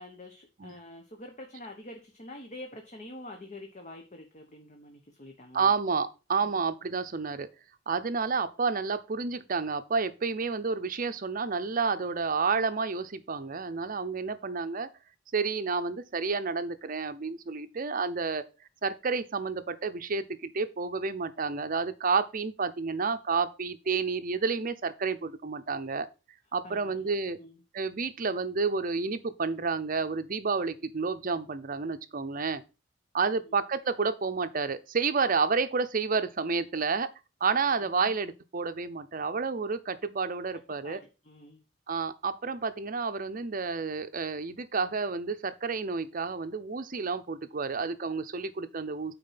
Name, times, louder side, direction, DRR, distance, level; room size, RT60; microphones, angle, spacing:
voice 1, 0.0-5.8 6.4-6.6 26.6-27.6 33.4-33.5 37.8-38.1 40.8-41.6, left 1 dB, 35° left, 1.0 m, -46 dB
voice 2, 5.5-7.5 7.9-14.9 15.3-18.4 18.8-26.1 26.5-27.4 27.7-32.6 33.1-37.1 37.4-41.0 41.9-49.1, right 4 dB, 45° right, 0.7 m, -30 dB
8.7 x 4.3 x 5.7 m
head